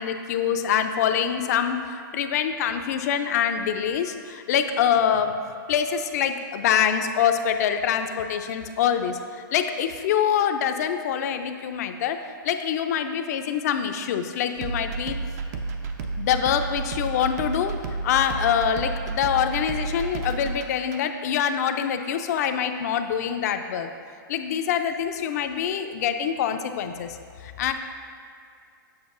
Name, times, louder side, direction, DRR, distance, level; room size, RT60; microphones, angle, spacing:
voice 1, 0.0-1.8 2.1-5.4 5.7-9.2 9.5-12.2 12.4-15.2 16.2-17.8 18.0-23.9 24.3-27.2 27.4-27.7, left 8 dB, 50° left, 7 dB, 0.4 m, -25 dB
sound 1, 14.6-21.0, right 3 dB, 45° right, 0.6 m, -31 dB
7.1 x 6.2 x 2.5 m, 2.3 s
hypercardioid pair, 150°, 11 cm